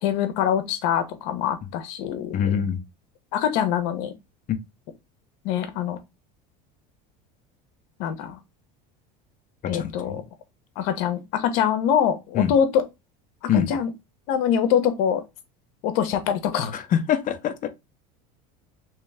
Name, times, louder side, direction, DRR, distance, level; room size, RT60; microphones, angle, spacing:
voice 1, 0.0-2.6 3.3-4.1 5.4-6.0 8.0-8.4 9.7-10.2 10.8-12.8 13.4-13.9 14.3-15.2 15.8-16.7, left 8 dB, 70° left, 0.9 m, -24 dB
voice 2, 2.3-2.8 4.5-4.6 9.7-10.2 12.4-12.5 13.5-13.7 16.7-17.7, left 8 dB, 40° left, 0.8 m, -24 dB
3.2 x 3.0 x 3.5 m
supercardioid pair, 105°, 21 cm